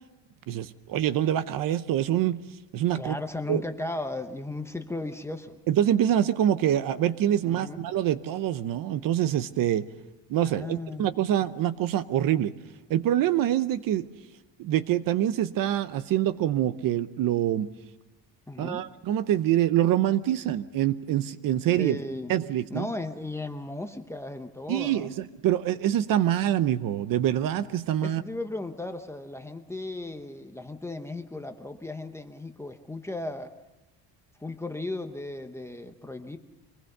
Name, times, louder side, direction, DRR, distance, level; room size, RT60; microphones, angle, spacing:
voice 1, 0.5-2.4 2.7-3.2 3.5-3.6 5.7-9.8 10.3-12.5 12.9-14.1 14.6-17.7 18.6-22.0 22.3-22.9 24.7-28.2, right 11 dB, 50° right, 14 dB, 0.8 m, -25 dB
voice 2, 2.9-5.6 7.4-7.8 10.4-11.1 18.5-18.9 21.8-22.3 22.7-25.1 28.0-33.5 34.4-36.4, left 2 dB, 5° left, 6 dB, 0.7 m, -36 dB
25.0 x 19.5 x 6.6 m, 1.0 s
cardioid pair, 180°, 42 cm